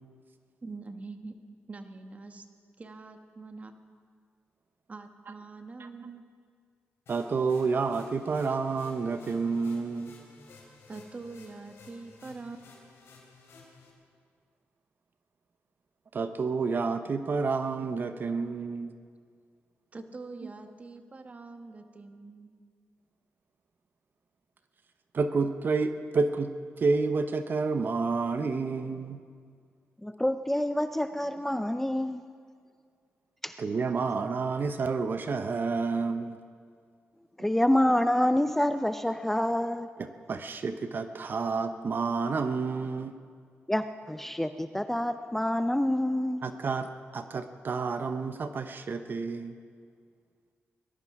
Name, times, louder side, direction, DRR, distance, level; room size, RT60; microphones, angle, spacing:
voice 1, 0.6-1.4 1.7-2.4 2.8-3.7 4.9-6.2 10.9-12.6 19.9-22.6, right 3 dB, 35° right, 7 dB, 1.3 m, -44 dB
voice 2, 5.8-6.1 7.1-10.1 16.1-18.9 20.4-20.5 25.1-26.5 26.8-29.2 33.6-36.4 40.0-43.1 46.4-49.6, right 4 dB, 50° right, 9 dB, 0.8 m, -29 dB
sound 1, 7.1-13.9, left 3 dB, 75° left, 3.8 m, -54 dB
voice 3, 30.0-32.2 33.4-33.6 37.4-39.9 43.7-46.4, left 1 dB, 5° left, 10 dB, 0.5 m, -27 dB
19.5 x 12.0 x 5.9 m, 2.1 s
cardioid pair, 95°, 4 cm